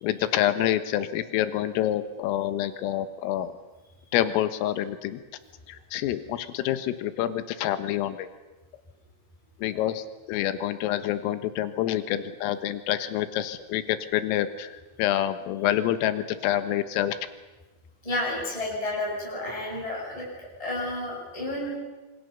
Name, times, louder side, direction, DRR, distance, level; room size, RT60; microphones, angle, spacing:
voice 1, 0.0-3.5 4.1-5.2 5.7-8.3 9.6-17.2, left 12 dB, 80° left, 11 dB, 3.9 m, -27 dB
voice 2, 18.0-21.8, left 1 dB, 5° left, -3 dB, 7.2 m, -31 dB
26.5 x 25.0 x 6.9 m, 1.2 s
omnidirectional pair, 6.0 m